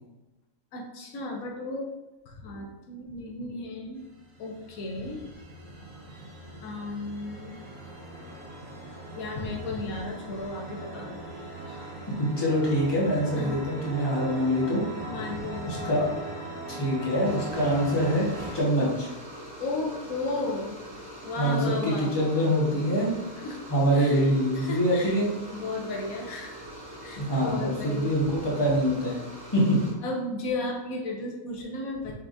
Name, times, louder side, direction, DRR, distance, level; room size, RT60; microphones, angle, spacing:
voice 1, 0.7-1.9 2.3-4.0 4.4-5.3 6.6-7.6 9.1-11.2 11.7-11.9 13.3-13.6 15.1-16.0 19.6-20.8 21.2-22.5 23.4-23.6 23.9-24.3 24.5-25.2 25.5-26.6 27.0-28.1 30.0-32.1, left 2 dB, 85° left, 0 dB, 1.2 m, -34 dB
sound 1, 4.0-18.6, right 1 dB, 40° right, 1.0 m, -40 dB
voice 2, 12.2-14.8 15.6-16.1 16.7-18.3 18.5-19.1 21.4-23.2 23.7-25.3 27.2-29.2 29.5-29.8, equal, 20° left, -6 dB, 1.3 m, -25 dB
sound 2, 17.2-29.9, right 1 dB, 15° right, 0.8 m, -43 dB
5.7 x 3.5 x 2.6 m, 1.1 s
omnidirectional pair, 1.5 m